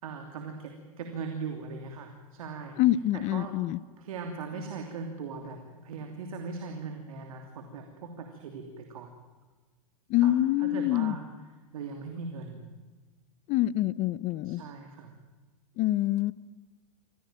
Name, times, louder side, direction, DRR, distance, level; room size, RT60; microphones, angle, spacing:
voice 1, 0.0-2.8 3.1-3.6 4.0-9.1 10.2-10.3 10.6-11.2 11.7-12.6 14.4-15.1, right 5 dB, 75° right, 4 dB, 3.0 m, -39 dB
voice 2, 2.8-3.8 10.1-11.2 13.5-14.6 15.8-16.3, left 14 dB, 40° left, 19 dB, 0.8 m, -26 dB
25.0 x 16.5 x 8.9 m, 1.3 s
hypercardioid pair, 115°, 18 cm